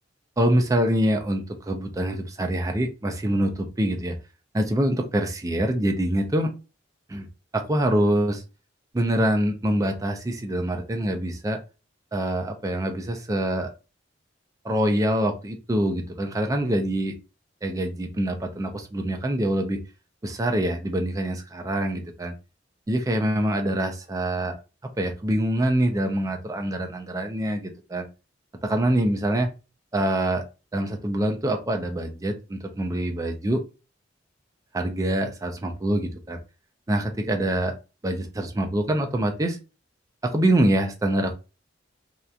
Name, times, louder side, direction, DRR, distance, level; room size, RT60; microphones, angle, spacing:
voice 1, 0.4-4.2 4.5-6.5 7.1-7.3 7.5-8.4 8.9-11.6 12.1-13.7 14.6-17.2 17.6-19.8 20.2-22.3 22.9-24.6 25.0-28.1 28.6-29.5 29.9-30.4 30.7-33.6 34.7-36.4 36.9-37.7 38.0-39.6 40.2-41.3, right 1 dB, 20° right, 4 dB, 0.4 m, -25 dB
2.8 x 2.2 x 2.4 m, 0.31 s
head